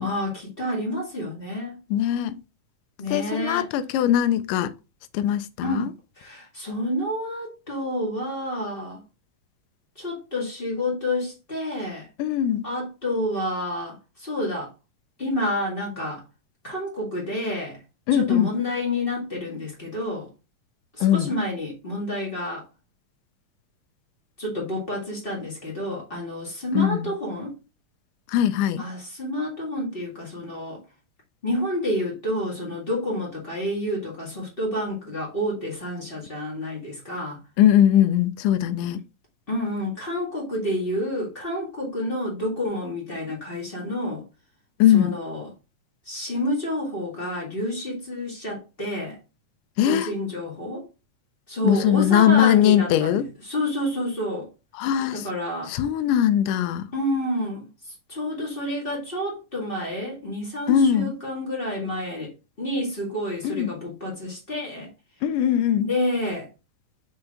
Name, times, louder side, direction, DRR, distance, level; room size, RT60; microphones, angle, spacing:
voice 1, 0.0-1.8 3.0-3.7 5.6-9.0 9.9-12.1 12.6-14.7 15.2-16.2 16.6-17.8 18.1-20.3 21.0-22.6 24.4-27.5 28.8-30.8 31.4-37.4 39.5-44.2 44.9-45.5 46.0-49.2 49.8-50.8 51.5-54.5 55.1-55.7 56.9-57.7 58.1-62.3 62.6-64.9 65.8-66.5, left 1 dB, 20° left, 1.7 m, -29 dB
voice 2, 1.9-2.4 3.1-4.7 5.1-5.9 12.2-12.6 18.1-18.5 21.0-21.3 26.8-27.0 28.3-28.9 37.6-39.0 44.8-45.2 49.8-50.1 51.6-53.2 54.8-55.3 55.7-56.9 60.7-61.1 63.4-63.7 65.2-65.9, left 10 dB, 80° left, 2.1 m, -20 dB
6.1 x 4.4 x 3.7 m
omnidirectional pair, 3.8 m